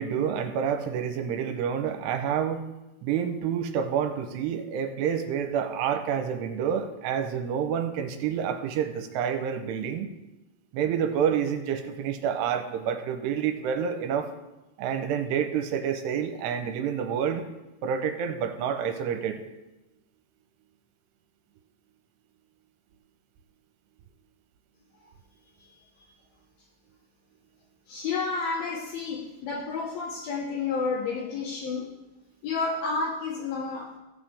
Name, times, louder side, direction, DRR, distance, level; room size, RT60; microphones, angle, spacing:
voice 1, 0.0-2.6 3.0-10.1 10.7-14.3 14.8-17.4 17.8-19.4, right 8 dB, 85° right, 6 dB, 2.8 m, -28 dB
voice 2, 27.9-31.9 32.4-34.0, left 4 dB, 75° left, -1 dB, 2.5 m, -30 dB
16.5 x 7.3 x 3.5 m, 1.0 s
omnidirectional pair, 4.9 m